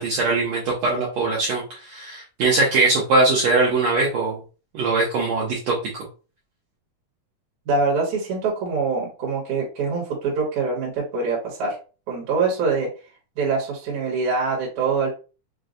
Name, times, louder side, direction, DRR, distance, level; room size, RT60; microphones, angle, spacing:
voice 1, 0.0-4.4 4.7-5.8, right 3 dB, 80° right, -4 dB, 1.5 m, -21 dB
voice 2, 7.7-11.8 12.1-12.9 13.4-15.1, right 4 dB, 65° right, -3 dB, 2.3 m, -24 dB
6.2 x 2.2 x 2.5 m, 0.34 s
omnidirectional pair, 4.3 m